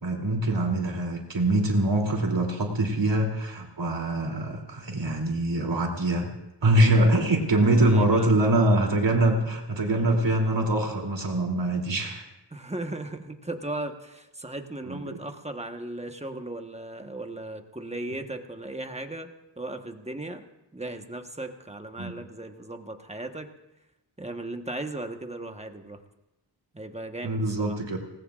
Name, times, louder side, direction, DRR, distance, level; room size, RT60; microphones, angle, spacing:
voice 1, 0.0-6.3 6.6-12.2 14.8-15.0 22.0-22.2 27.2-28.0, right 1 dB, 80° right, 0 dB, 3.1 m, -24 dB
voice 2, 7.7-8.3 12.5-19.3 19.6-20.4 20.7-23.5 24.2-26.0 26.7-27.8, right 2 dB, 15° right, 5 dB, 1.2 m, -37 dB
28.0 x 18.5 x 2.5 m, 0.94 s
wide cardioid pair, 90°, 43 cm